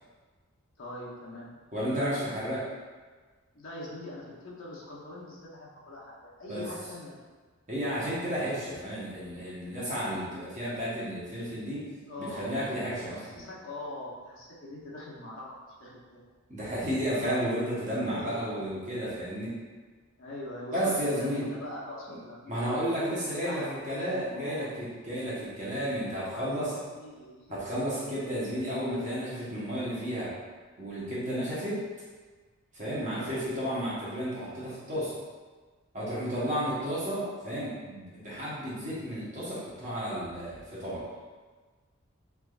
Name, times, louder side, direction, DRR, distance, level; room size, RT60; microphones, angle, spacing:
voice 1, 0.8-1.5 3.5-7.2 12.1-12.8 13.1-16.2 17.8-18.7 20.2-24.7 26.0-27.6 33.0-33.3 36.4-36.7, left 1 dB, 60° left, -5 dB, 0.7 m, -43 dB
voice 2, 1.7-2.7 6.5-6.6 7.7-11.8 12.2-13.4 16.5-19.5 20.7-21.5 22.1-22.2 22.5-26.7 27.5-30.3 30.8-31.8 32.7-35.1 35.9-41.0, equal, 35° right, -8 dB, 0.9 m, -32 dB
3.4 x 3.0 x 2.3 m, 1.4 s
head